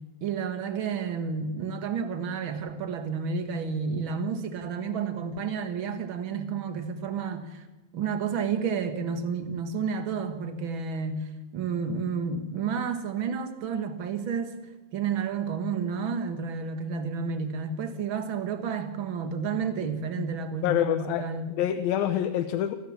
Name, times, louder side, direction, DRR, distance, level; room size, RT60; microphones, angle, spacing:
voice 1, 0.2-7.6 7.9-14.5 14.9-21.5, right 5 dB, 55° right, 1.5 m, -31 dB
voice 2, 20.6-22.8, left 11 dB, 75° left, 2.5 m, -27 dB
28.0 x 14.5 x 7.3 m
omnidirectional pair, 4.5 m